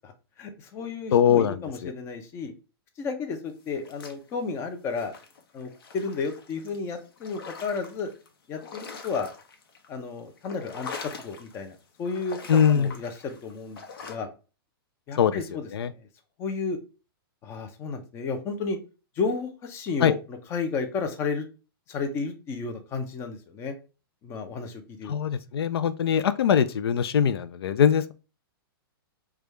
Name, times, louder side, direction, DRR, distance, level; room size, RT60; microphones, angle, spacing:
voice 1, 0.4-2.5 3.0-5.1 5.5-8.1 8.5-9.3 9.9-10.9 11.2-12.4 12.7-13.8 14.1-14.3 15.1-16.1 16.4-16.8 17.4-18.8 19.2-21.5 21.9-23.7 24.2-25.1, left 4 dB, 20° left, 0.6 m, -32 dB
voice 2, 1.1-1.9 12.5-12.9 15.2-15.4 15.7-15.9 20.0-20.1 25.1-28.1, left 8 dB, 85° left, 0.4 m, -22 dB
sound 1, 3.7-4.6 4.9-8.3 8.6-10.0 10.3-11.7 12.0-14.2, left 5 dB, 70° left, 0.9 m, -43 dB
4.9 x 2.3 x 3.1 m
hypercardioid pair, 155°, 13 cm